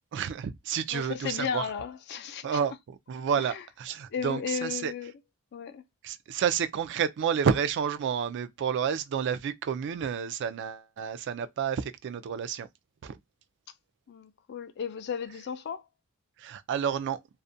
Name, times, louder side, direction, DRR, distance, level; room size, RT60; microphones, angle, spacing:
voice 1, 0.0-1.7 2.4-4.9 6.0-12.7 13.0-13.2 16.4-17.2, right 7 dB, 55° right, 0.3 m, -30 dB
voice 2, 0.9-2.6 3.4-3.6 4.1-5.1 5.5-5.8 14.1-15.8, left 7 dB, 50° left, 0.4 m, -35 dB
2.4 x 2.1 x 2.6 m
head